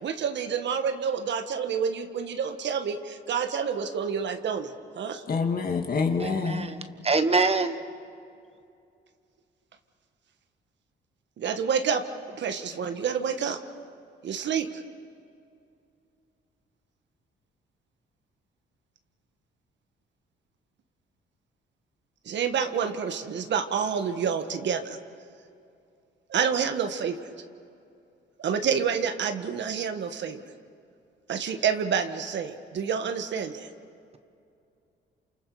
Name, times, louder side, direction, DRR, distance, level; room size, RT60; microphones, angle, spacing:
voice 1, 0.0-5.2 11.4-13.6 14.2-14.7 22.2-25.0 26.3-27.3 28.4-30.4 31.3-33.7, right 7 dB, 65° right, 8 dB, 1.6 m, -28 dB
voice 2, 5.3-6.7, left 4 dB, 45° left, 4 dB, 2.4 m, -26 dB
voice 3, 6.2-6.8 7.0-7.7, right 3 dB, 30° right, 9 dB, 1.3 m, -24 dB
28.5 x 27.5 x 4.9 m, 2.5 s
cardioid pair, 90°, 20 cm